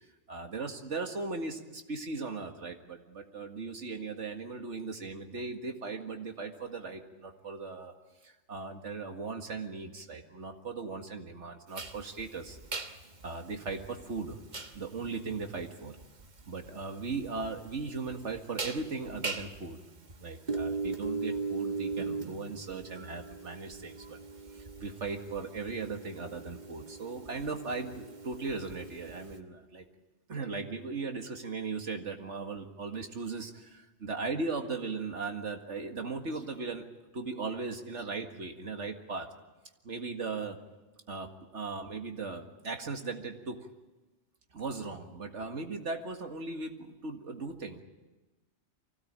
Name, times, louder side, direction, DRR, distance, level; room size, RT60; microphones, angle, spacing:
voice 1, 0.3-7.9 8.2-12.6 13.2-14.4 14.7-16.0 16.5-19.8 20.2-24.2 24.5-29.8 30.3-36.9 37.1-39.3 39.8-40.6 41.1-43.7 44.5-47.8, right 4 dB, 85° right, 4 dB, 2.2 m, -38 dB
sound 1, 11.7-29.4, right 3 dB, 40° right, 1.4 m, -40 dB
24.5 x 17.0 x 8.8 m, 1.1 s
omnidirectional pair, 1.2 m